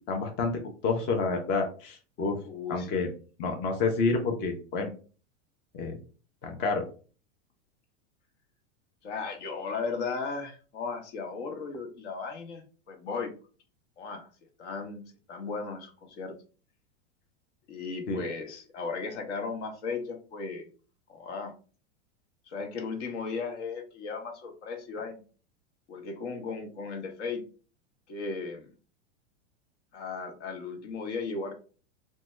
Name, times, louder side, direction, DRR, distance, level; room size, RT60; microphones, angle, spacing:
voice 1, 0.1-0.5 0.8-2.4 2.7-3.1 3.4-4.9 5.7-5.9 6.4-6.8 18.1-18.2, left 4 dB, 30° left, 3 dB, 0.5 m, -28 dB
voice 2, 2.4-3.0 9.0-13.3 14.0-14.3 14.6-15.0 15.3-16.3 17.7-20.7 21.1-21.5 22.5-25.2 25.9-27.4 28.1-28.7 29.9-31.5, left 4 dB, 70° left, 4 dB, 1.0 m, -36 dB
2.6 x 2.2 x 3.1 m, 0.38 s
supercardioid pair, 125°, 36 cm